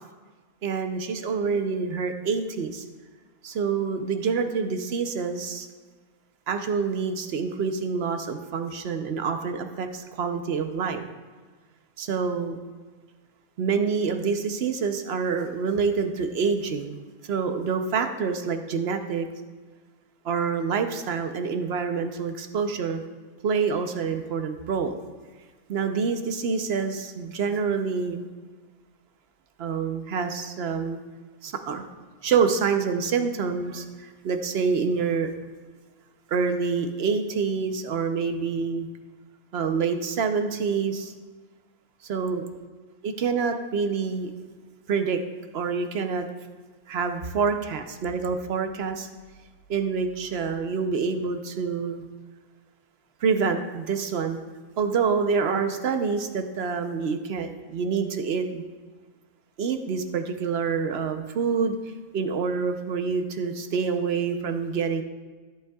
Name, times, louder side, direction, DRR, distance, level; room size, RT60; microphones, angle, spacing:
voice 1, 0.6-2.8 3.4-5.7 6.5-11.0 12.0-12.6 13.6-17.0 17.3-19.3 20.2-23.0 23.4-24.9 25.7-28.3 29.6-31.0 31.4-31.8 32.2-35.3 36.3-38.9 39.5-41.1 42.0-42.4 43.0-44.3 44.9-45.2 45.5-46.3 46.9-49.1 49.7-52.1 53.2-54.4 54.8-58.6 59.6-61.8 62.1-65.0, right 5 dB, 55° right, 7 dB, 0.9 m, -27 dB
14.0 x 8.1 x 2.3 m, 1.4 s
omnidirectional pair, 1.4 m